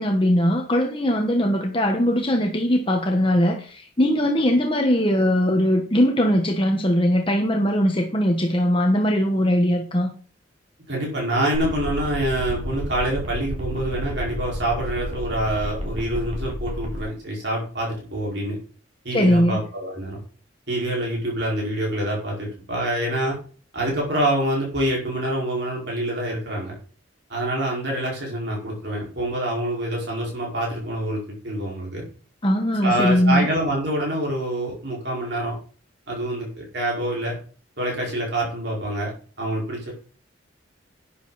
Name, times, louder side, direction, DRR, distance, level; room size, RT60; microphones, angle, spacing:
voice 1, 0.0-10.1 19.1-19.6 32.4-33.5, equal, 25° left, 2 dB, 1.3 m, -20 dB
voice 2, 10.9-18.6 19.0-20.2 20.7-23.4 23.7-26.7 27.3-32.1 32.8-35.5 36.1-37.3 37.8-39.1 39.4-39.9, right 1 dB, 60° right, -3 dB, 5.0 m, -26 dB
sound 1, 11.6-17.0, equal, 35° right, 3.6 m, -31 dB
12.0 x 9.8 x 4.2 m, 0.41 s
head